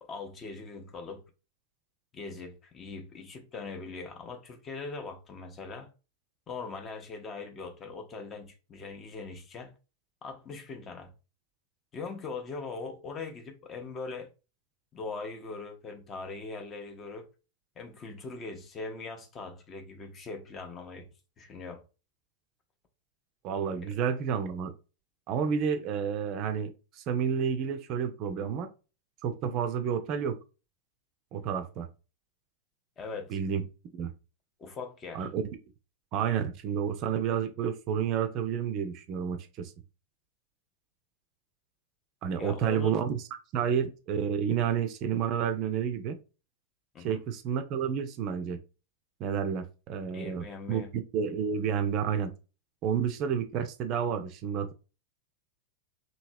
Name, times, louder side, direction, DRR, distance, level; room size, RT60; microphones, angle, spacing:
voice 1, 0.0-1.2 2.1-5.9 6.5-9.8 10.2-11.1 11.9-14.3 14.9-17.3 17.8-21.1 21.4-21.8 23.8-23.9 33.0-33.4 34.6-35.3 42.4-42.9 46.9-47.2 50.1-50.9, left 4 dB, 25° left, 0.6 m, -41 dB
voice 2, 23.4-24.7 25.3-28.7 29.2-30.4 31.3-31.9 33.3-33.6 33.9-34.1 35.1-35.5 36.1-39.7 42.2-43.2 43.5-46.2 47.0-48.6 49.2-52.3 52.8-54.7, right 7 dB, 40° right, 0.4 m, -30 dB
2.8 x 2.7 x 2.6 m
figure-of-eight pair, 90°, 0 cm